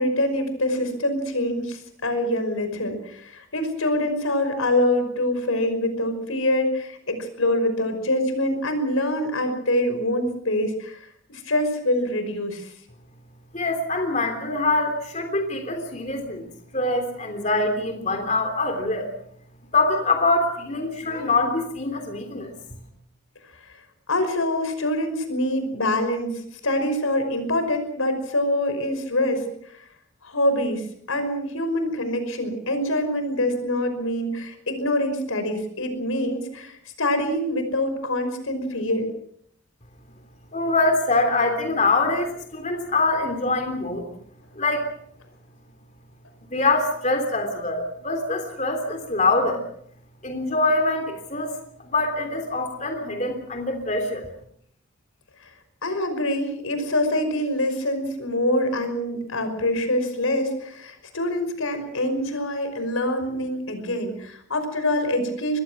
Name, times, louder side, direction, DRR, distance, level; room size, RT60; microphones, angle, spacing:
voice 1, 0.0-11.0 11.5-12.7 24.1-29.5 29.7-29.8 30.2-39.1 55.4-55.5 55.8-65.6, left 1 dB, 90° left, 8 dB, 5.6 m, -25 dB
voice 2, 13.5-16.4 16.7-19.1 19.7-22.8 40.5-44.1 44.5-44.9 46.5-49.6 50.2-51.5 51.8-54.3, left 2 dB, 35° left, 4 dB, 3.3 m, -24 dB
25.0 x 21.0 x 6.2 m, 0.67 s
head